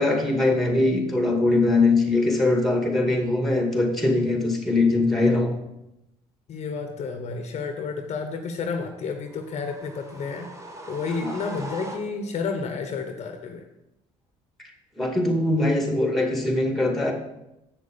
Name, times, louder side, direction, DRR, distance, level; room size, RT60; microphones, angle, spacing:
voice 1, 0.0-5.5 11.2-11.3 14.6-14.7 15.0-17.1, left 2 dB, ahead, 2 dB, 2.2 m, -22 dB
voice 2, 6.5-10.5 10.9-13.6, left 4 dB, 50° left, 6 dB, 1.1 m, -31 dB
sound 1, 9.3-12.5, right 1 dB, 20° right, 1.5 m, -40 dB
7.6 x 6.7 x 5.3 m, 0.87 s
supercardioid pair, 80°, 14 cm